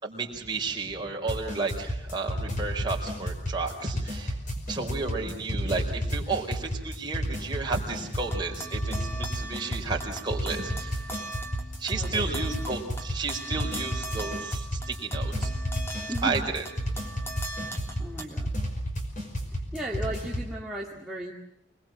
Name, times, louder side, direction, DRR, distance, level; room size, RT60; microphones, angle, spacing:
voice 1, 0.0-4.4 4.7-11.1 11.8-15.5 16.2-16.6, right 4 dB, 25° right, 0 dB, 4.7 m, -32 dB
sound 1, 1.3-20.5, equal, 40° left, 5.5 m, -32 dB
sound 2, 8.2-18.2, right 2 dB, 15° left, 3.1 m, -40 dB
voice 2, 11.9-12.6 16.1-16.5 18.0-18.6 19.5-21.3, right 1 dB, 5° right, -4 dB, 2.1 m, -36 dB
26.5 x 21.0 x 7.5 m, 0.78 s
head